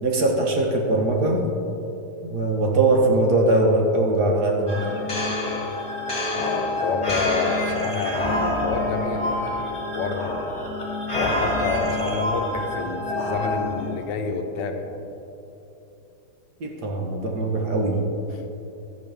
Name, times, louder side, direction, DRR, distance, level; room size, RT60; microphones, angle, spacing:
voice 1, 0.0-1.5 2.2-4.8 16.6-18.0, right 2 dB, 50° right, 0 dB, 1.6 m, -21 dB
sound 1, 4.7-14.0, left 1 dB, 15° left, 2.0 m, -27 dB
voice 2, 6.3-10.4 11.1-15.0, left 4 dB, 65° left, 5 dB, 1.3 m, -29 dB
13.0 x 9.1 x 3.5 m, 2.9 s
omnidirectional pair, 2.4 m